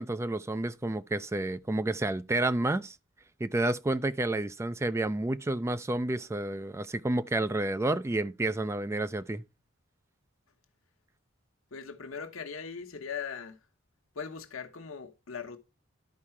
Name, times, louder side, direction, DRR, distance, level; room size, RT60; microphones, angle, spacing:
voice 1, 0.0-3.0 3.4-9.4, right 2 dB, 15° right, 0.4 m, -30 dB
voice 2, 11.7-13.6 14.1-15.6, left 6 dB, 85° left, 1.1 m, -39 dB
11.5 x 4.8 x 4.4 m
head